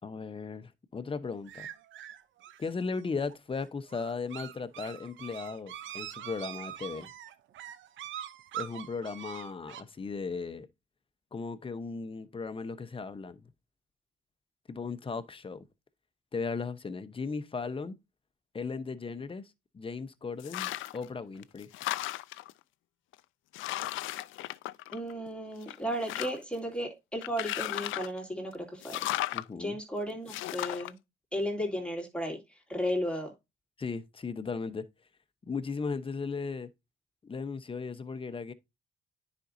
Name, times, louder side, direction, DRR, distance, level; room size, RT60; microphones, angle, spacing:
voice 1, 0.0-1.7 2.6-7.1 8.5-10.7 11.3-13.4 14.7-15.6 16.3-18.0 18.5-21.7 29.3-29.8 33.8-34.8 35.5-36.7 37.2-38.5, left 4 dB, 25° left, 0.9 m, -37 dB
sound 1, 1.5-9.8, right 11 dB, 75° right, 0.7 m, -43 dB
sound 2, 20.4-21.1 21.4-22.5 23.1-23.2 23.5-25.3 25.6-26.6 27.2-28.2 28.8-29.5 30.3-30.9, left 16 dB, 85° left, 0.4 m, -35 dB
voice 2, 24.9-29.0 29.5-31.0 31.3-33.3, equal, 5° left, 2.7 m, -34 dB
9.8 x 5.3 x 2.6 m
cardioid pair, 90°, 20 cm